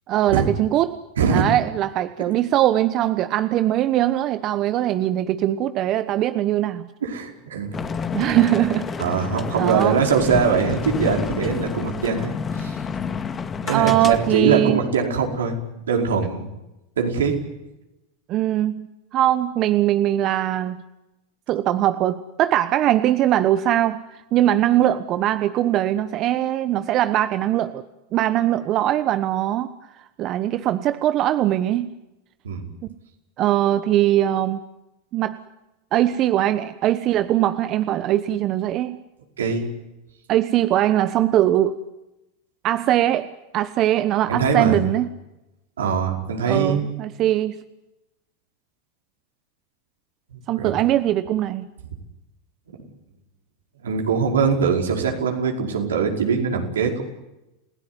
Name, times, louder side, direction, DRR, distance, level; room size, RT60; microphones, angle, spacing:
voice 1, 0.1-1.0 1.3-6.9 8.1-8.9 9.5-10.0 13.7-14.8 18.3-18.9 19.1-20.8 21.5-27.8 28.1-29.7 30.2-31.9 33.4-34.6 35.1-35.4 35.9-39.0 40.3-41.8 42.6-43.3 43.5-45.1 46.5-47.6 50.5-51.7, right 13 dB, 45° right, 11 dB, 1.1 m, -21 dB
voice 2, 7.0-7.9 8.2-8.4 9.0-12.8 13.6-15.6 15.9-16.5 17.0-17.4 32.4-32.7 39.4-39.7 44.3-44.8 45.8-46.9 50.3-50.7 52.7-52.8 53.8-57.0, right 5 dB, 85° right, 2 dB, 5.0 m, -22 dB
sound 1, 7.7-14.4, left 6 dB, 25° left, 2.2 m, -29 dB
30.0 x 17.0 x 9.7 m, 0.97 s
hypercardioid pair, 105°, 0 cm